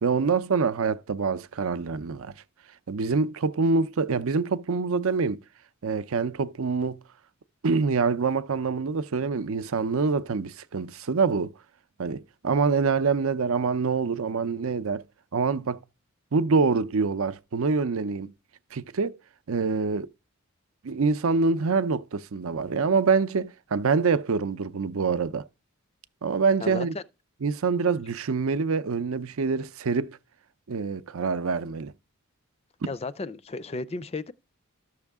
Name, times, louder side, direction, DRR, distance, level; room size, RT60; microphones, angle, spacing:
voice 1, 0.0-2.3 2.9-5.4 5.8-7.0 7.6-11.5 12.0-15.0 15.3-15.8 16.3-18.3 18.7-19.2 19.5-20.1 20.8-25.4 26.2-26.9 27.4-30.2 30.7-31.9, right 4 dB, 70° right, 0.6 m, -25 dB
voice 2, 26.6-27.0 32.9-34.3, left 3 dB, 30° left, 0.4 m, -34 dB
13.0 x 6.4 x 3.6 m
head